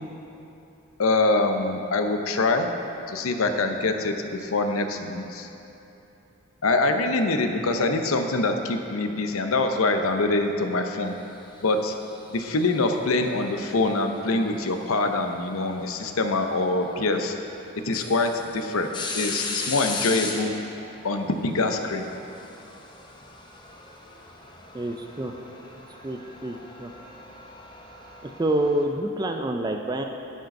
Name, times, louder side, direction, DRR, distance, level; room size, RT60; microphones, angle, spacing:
voice 1, 1.0-2.7 3.1-5.5 6.6-11.2 11.6-11.9 12.3-17.3 17.8-20.6 21.0-22.1, left 2 dB, 90° left, 6 dB, 0.7 m, -24 dB
sound 1, 11.6-13.1 14.9-15.0 16.6-16.7 17.1-17.2 17.7-28.8, left 3 dB, 20° left, 0.7 m, -37 dB
voice 2, 24.7-25.3 26.0-26.9 28.2-30.0, right 1 dB, 20° right, 3 dB, 0.3 m, -27 dB
11.5 x 5.2 x 5.3 m, 2.9 s
head